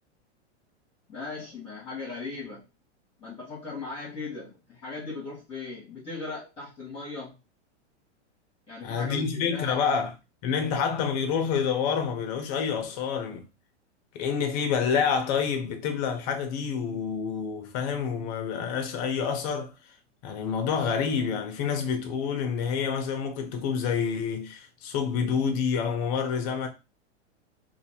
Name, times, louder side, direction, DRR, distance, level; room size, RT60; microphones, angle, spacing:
voice 1, 1.1-2.6 3.2-7.3 8.7-9.2 9.5-9.8, left 3 dB, 15° left, 1.2 m, -38 dB
voice 2, 8.8-10.1 10.4-13.4 14.1-19.7 20.2-26.7, left 6 dB, 35° left, 0.8 m, -28 dB
2.7 x 2.6 x 4.1 m
supercardioid pair, 155°, 35 cm